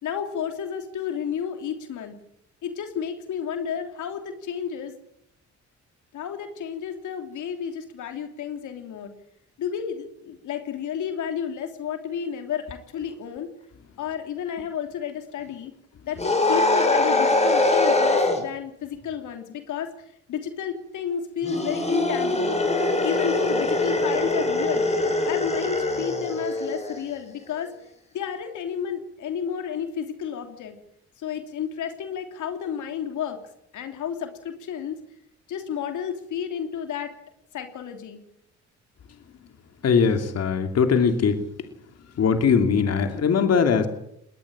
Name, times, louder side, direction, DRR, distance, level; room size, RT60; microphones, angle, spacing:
voice 1, 0.0-2.2 2.6-4.9 6.1-9.1 9.6-13.5 14.0-15.7 16.1-22.6 23.0-24.9 25.2-27.7 28.1-30.7 31.2-33.4 33.7-35.0 35.5-37.1 37.5-38.2, left 8 dB, 75° left, 6 dB, 3.1 m, -31 dB
sound 1, 16.2-18.4 21.4-27.0, left 2 dB, 20° left, 5.8 m, -23 dB
voice 2, 39.8-41.4 42.2-43.9, left 6 dB, 55° left, 7 dB, 2.9 m, -20 dB
20.0 x 20.0 x 8.9 m, 0.75 s
cardioid pair, 90°, 30 cm